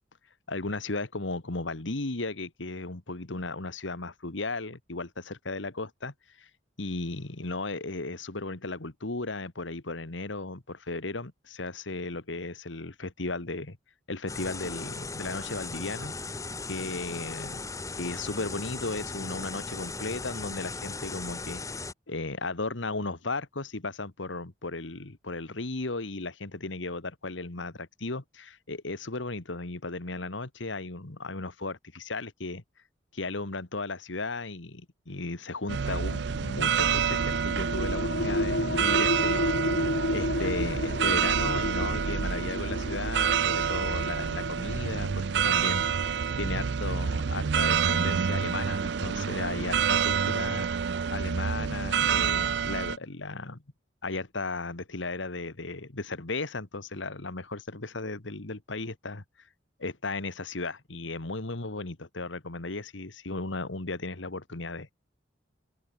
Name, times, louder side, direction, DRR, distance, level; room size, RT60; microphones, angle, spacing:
voice 1, 0.5-6.5 6.8-13.8 14.1-16.4 16.7-17.6 17.9-21.6 22.1-32.6 33.1-39.5 40.1-46.1 46.4-50.7 51.1-53.6 54.0-59.2 59.8-64.9, left 3 dB, 80° left, 1.8 m, -35 dB
sound 1, 14.3-21.9, left 3 dB, 15° left, 1.3 m, -37 dB
sound 2, 35.7-53.0, right 7 dB, 60° right, 0.4 m, -28 dB
sound 3, 37.1-48.3, left 1 dB, 60° left, 1.9 m, -33 dB
open air
head